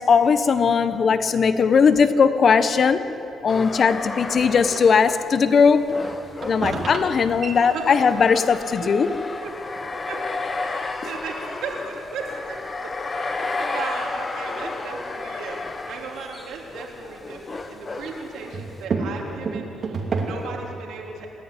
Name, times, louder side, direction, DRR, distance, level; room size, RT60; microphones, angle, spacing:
voice 1, 0.0-3.0 3.4-5.9 6.4-9.1, left 5 dB, 50° left, 11 dB, 1.1 m, -18 dB
sound 1, 3.5-18.8, left 3 dB, 30° left, 1.4 m, -33 dB
sound 2, 4.4-5.1 5.6-8.4 8.9-9.0 9.3-10.7 11.2-11.3 11.8-11.9 12.5-12.6 14.5-14.8 15.5-17.0 17.2-20.7, right 4 dB, 50° right, 2.8 m, -32 dB
voice 2, 10.6-12.9 13.2-21.3, right 4 dB, 80° right, 0 dB, 3.7 m, -36 dB
27.5 x 10.0 x 9.8 m, 2.9 s
cardioid pair, 90°, 0 cm